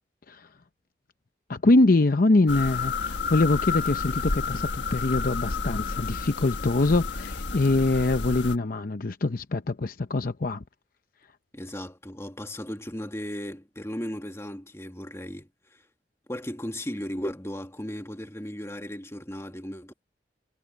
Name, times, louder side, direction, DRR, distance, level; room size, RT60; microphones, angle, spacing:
voice 1, 1.5-10.6, left 2 dB, 55° left, 0.7 m, -24 dB
sound 1, 2.5-8.6, left 4 dB, 90° left, 1.4 m, -31 dB
voice 2, 11.5-15.8 16.3-19.9, equal, 15° left, 2.1 m, -36 dB
head